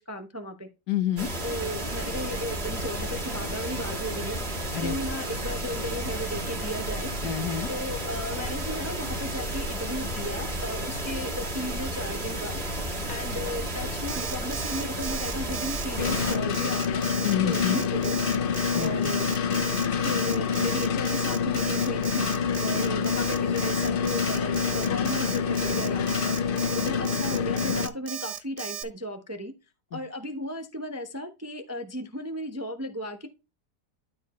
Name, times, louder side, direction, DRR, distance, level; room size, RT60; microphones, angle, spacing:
voice 1, 0.0-0.7 1.4-4.4 4.8-7.1 7.7-12.6 13.1-17.0 17.4-18.2 18.8-19.3 20.0-26.3 26.7-29.5 29.9-33.3, equal, 15° right, 0.6 m, -35 dB
voice 2, 0.9-1.3 4.7-5.0 7.2-7.7 17.2-17.8 18.7-19.1 29.9-30.0, left 10 dB, 70° left, 1.6 m, -28 dB
sound 1, 1.2-16.4, right 1 dB, 35° right, 2.7 m, -32 dB
Alarm, 14.1-28.8, right 10 dB, 80° right, 1.5 m, -36 dB
sound 2, 16.0-27.9, left 7 dB, 55° left, 0.6 m, -27 dB
13.0 x 4.5 x 3.1 m
omnidirectional pair, 1.8 m